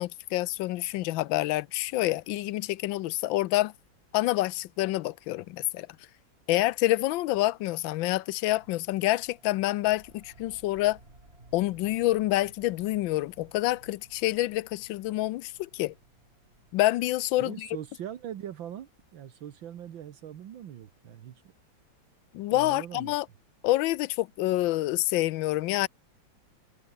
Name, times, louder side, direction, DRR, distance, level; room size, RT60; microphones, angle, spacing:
voice 1, 0.0-3.7 4.1-5.9 6.5-11.0 11.5-15.9 16.7-17.7 22.3-23.2 23.6-25.9, left 17 dB, 80° left, 1.3 m, -27 dB
sound 1, 8.5-18.7, right 2 dB, 30° right, 4.5 m, -58 dB
voice 2, 17.4-21.4 22.5-23.2, right 10 dB, 80° right, 2.0 m, -41 dB
omnidirectional pair, 2.1 m